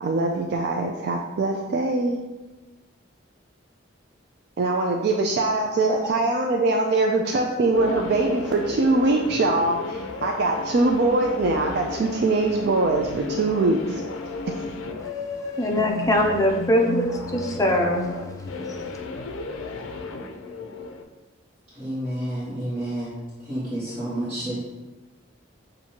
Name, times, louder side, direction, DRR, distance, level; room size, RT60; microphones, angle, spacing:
voice 1, 0.0-2.2 4.6-14.0 14.5-14.6, right 2 dB, 55° right, 2 dB, 0.3 m, -22 dB
sound 1, 7.7-21.0, left 3 dB, 80° left, 0.4 m, -34 dB
voice 2, 15.6-19.0, left 1 dB, 15° left, 0 dB, 0.5 m, -23 dB
voice 3, 21.8-23.1 23.4-24.5, right 1 dB, 30° right, -12 dB, 1.3 m, -29 dB
7.1 x 2.6 x 2.8 m, 1.2 s
head